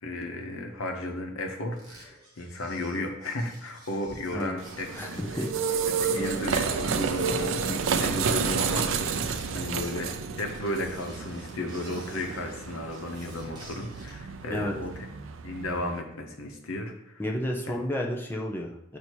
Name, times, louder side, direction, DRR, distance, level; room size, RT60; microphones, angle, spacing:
voice 1, 0.0-5.2 6.0-15.0 15.4-17.2 17.7-17.8, left 1 dB, 80° left, 3 dB, 1.0 m, -34 dB
sound 1, 1.7-14.2, right 2 dB, 20° right, 1.2 m, -52 dB
sound 2, 4.6-16.0, right 5 dB, 70° right, 0.4 m, -30 dB
voice 2, 4.9-5.5 14.5-14.7 17.2-19.0, left 1 dB, 10° left, 0 dB, 0.6 m, -31 dB
8.0 x 2.8 x 4.5 m, 0.86 s
head